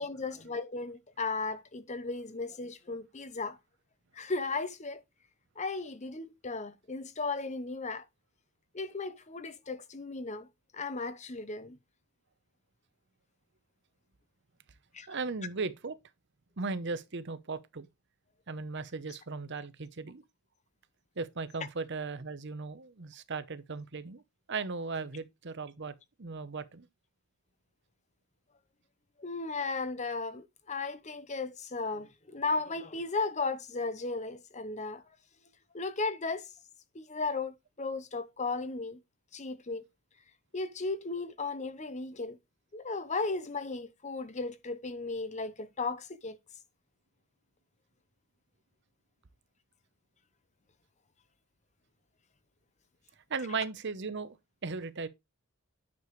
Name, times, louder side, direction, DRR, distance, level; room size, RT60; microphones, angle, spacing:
voice 1, 0.0-3.6 4.2-5.0 5.6-8.0 8.7-10.5 10.7-11.8 14.9-15.1 29.2-35.0 35.7-36.5 36.9-39.0 39.3-39.8 40.5-42.4 42.7-46.4, left 3 dB, 30° left, 0.8 m, -35 dB
voice 2, 15.1-16.0 16.6-17.9 18.5-20.2 21.2-24.2 24.5-26.9 53.3-54.4 54.6-55.1, right 4 dB, 50° right, 0.8 m, -37 dB
9.5 x 6.8 x 3.2 m
head